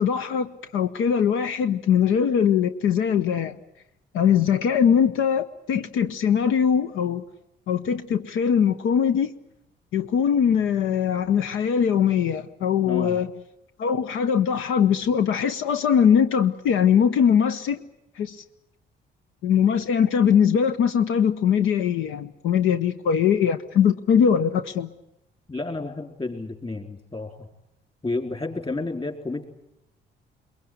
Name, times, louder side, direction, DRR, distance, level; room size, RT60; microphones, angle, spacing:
voice 1, 0.0-3.5 4.1-7.2 7.7-9.3 9.9-13.3 13.8-17.8 18.2-18.4 19.4-24.9, left 8 dB, 85° left, 10 dB, 0.9 m, -21 dB
voice 2, 12.8-13.2 25.5-27.5 28.0-29.4, left 2 dB, 25° left, 5 dB, 4.2 m, -31 dB
22.5 x 22.0 x 9.5 m, 0.83 s
cardioid pair, 90°, 20 cm